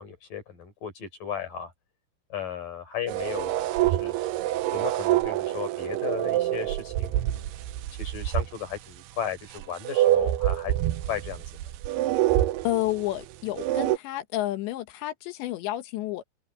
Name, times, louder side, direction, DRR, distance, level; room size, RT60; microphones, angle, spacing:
voice 1, 0.0-1.7 2.3-4.1 4.7-11.4, left 8 dB, 50° left, 5.7 m, -36 dB
sound 1, 3.1-8.5 8.7-8.8 9.5-13.2 13.6-14.0, right 14 dB, 80° right, 2.7 m, -26 dB
voice 2, 12.7-16.2, left 15 dB, 85° left, 3.5 m, -30 dB
omnidirectional pair, 5.0 m